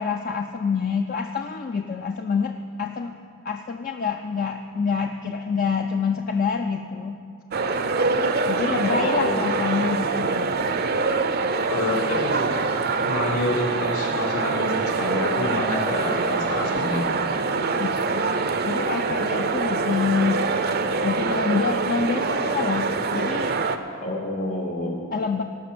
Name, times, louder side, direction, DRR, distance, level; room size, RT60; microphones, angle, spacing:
voice 1, 0.0-3.1 3.4-7.2 8.5-10.7 17.7-18.3 18.6-20.5 21.0-23.5 25.1-25.4, left 5 dB, 40° left, 5 dB, 0.4 m, -27 dB
sound 1, 7.5-23.8, right 4 dB, 45° right, 0.6 m, -25 dB
voice 2, 8.8-9.4 11.7-12.7 13.0-17.3 24.0-25.1, left 1 dB, 85° left, -2 dB, 2.8 m, -27 dB
17.5 x 6.0 x 7.6 m, 2.3 s
head